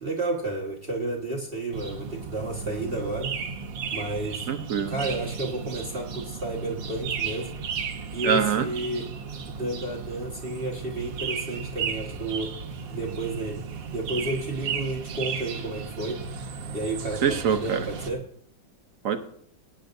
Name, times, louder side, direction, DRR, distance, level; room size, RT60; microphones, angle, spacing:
voice 1, 0.0-3.3 3.9-4.5 4.9-7.5 8.1-9.1 9.5-12.5 12.9-13.6 13.9-16.2 16.7-18.2, right 2 dB, 35° right, -1 dB, 1.5 m, -31 dB
sound 1, 1.7-18.1, right 6 dB, 85° right, 1.8 m, -35 dB
voice 2, 4.5-5.0 8.2-8.7 17.2-17.9 19.0-19.2, right 7 dB, 55° right, 9 dB, 1.1 m, -24 dB
22.0 x 9.9 x 2.6 m, 0.64 s
omnidirectional pair, 2.0 m